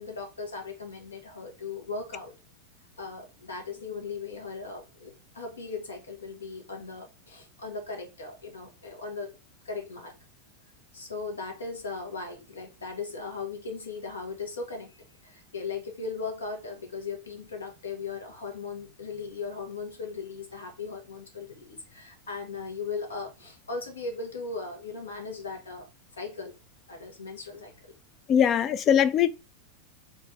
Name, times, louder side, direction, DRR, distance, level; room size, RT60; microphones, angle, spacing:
voice 1, 0.0-2.3 3.0-9.4 9.6-10.1 10.9-25.9 26.1-26.5 26.9-27.9, left 4 dB, 70° left, 1.3 m, -38 dB
voice 2, 28.3-29.3, left 9 dB, 30° left, 0.4 m, -21 dB
3.7 x 2.6 x 4.0 m
figure-of-eight pair, 90°, 0 cm